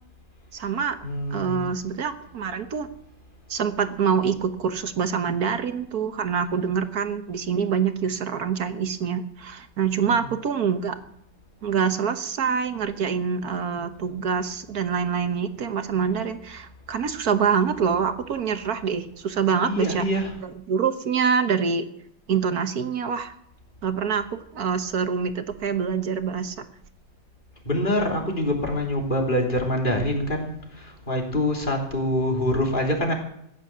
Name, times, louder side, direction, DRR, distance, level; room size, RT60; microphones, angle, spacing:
voice 1, 0.5-0.9 1.3-2.9 3.5-11.0 11.6-20.0 20.4-21.8 22.3-23.3 23.8-26.6, right 6 dB, 55° right, 9 dB, 1.5 m, -25 dB
voice 2, 1.0-1.6 10.1-10.3 19.6-20.4 27.7-33.1, left 1 dB, 25° left, 1 dB, 3.3 m, -25 dB
15.5 x 9.5 x 7.4 m, 0.77 s
omnidirectional pair, 2.1 m